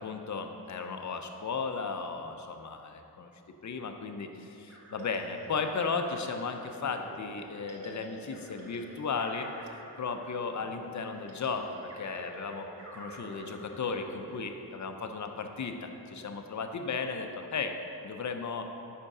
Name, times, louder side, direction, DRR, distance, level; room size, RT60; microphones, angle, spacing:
voice 1, 0.0-3.3 3.6-9.5 10.0-12.7 12.9-17.7 18.0-18.6, left 5 dB, 45° left, 6 dB, 0.5 m, -35 dB
sound 1, 4.7-15.3, right 1 dB, 35° right, 1.2 m, -48 dB
5.1 x 5.1 x 4.8 m, 2.8 s
wide cardioid pair, 75°, 41 cm